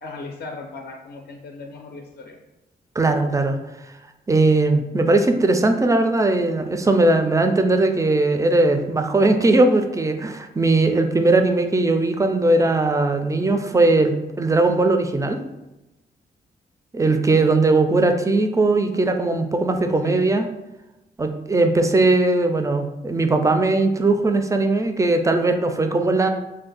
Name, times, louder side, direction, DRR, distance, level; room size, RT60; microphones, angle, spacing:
voice 1, 0.0-2.4 20.0-20.3, left 3 dB, 50° left, 2 dB, 0.5 m, -37 dB
voice 2, 3.0-3.6 4.3-15.4 16.9-20.5 21.2-26.3, right 2 dB, 15° right, 6 dB, 0.4 m, -19 dB
2.5 x 2.2 x 3.9 m, 0.98 s
supercardioid pair, 45°, 20 cm